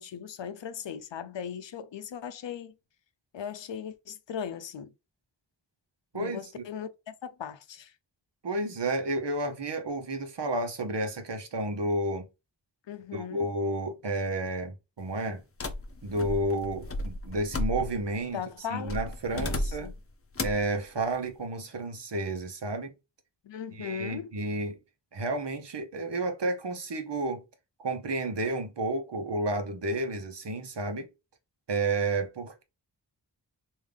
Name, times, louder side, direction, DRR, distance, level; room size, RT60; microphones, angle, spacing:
voice 1, 0.0-2.7 3.3-4.9 6.1-7.9 12.9-13.5 18.3-19.0 19.3-19.9 23.4-24.3, left 8 dB, 80° left, 0.6 m, -38 dB
voice 2, 6.1-6.6 8.4-12.3 13.1-15.4 16.0-18.4 18.7-19.9 20.4-22.9 23.7-24.8 25.1-27.4 27.8-31.1 31.7-32.6, right 2 dB, 70° right, 1.0 m, -31 dB
sound 1, 15.6-18.2 18.9-20.0 20.4-20.7, left 2 dB, 30° left, 0.6 m, -33 dB
3.6 x 2.7 x 3.4 m
wide cardioid pair, 75°, 44 cm